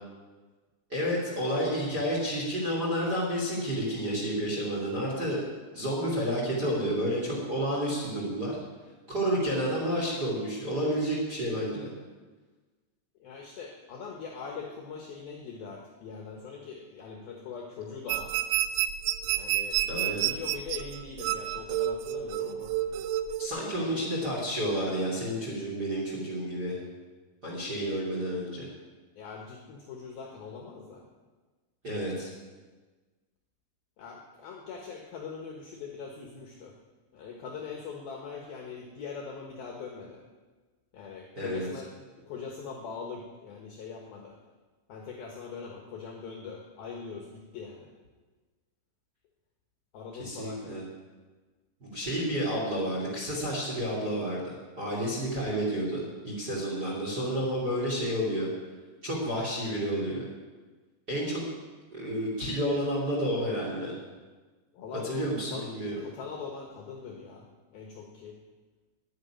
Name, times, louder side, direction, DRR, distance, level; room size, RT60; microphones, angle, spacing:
voice 1, 0.9-5.4 5.7-8.6 9.1-11.9 19.9-20.3 23.4-26.8 27.4-28.7 31.8-32.3 41.4-41.7 50.1-50.8 51.8-58.5 59.0-60.2 61.1-61.4 61.9-64.0 65.0-66.0, equal, 30° right, -3 dB, 2.2 m, -30 dB
voice 2, 13.2-18.3 19.3-19.9 20.2-22.7 23.7-24.1 29.2-31.1 34.0-36.7 37.1-40.2 40.9-44.4 44.9-47.9 49.9-50.8 64.7-65.7 66.0-67.4 67.7-68.4, left 5 dB, 70° left, 1 dB, 2.3 m, -42 dB
sound 1, 18.1-23.5, right 12 dB, 85° right, 3.1 m, -30 dB
10.5 x 9.7 x 10.0 m, 1.3 s
omnidirectional pair, 6.0 m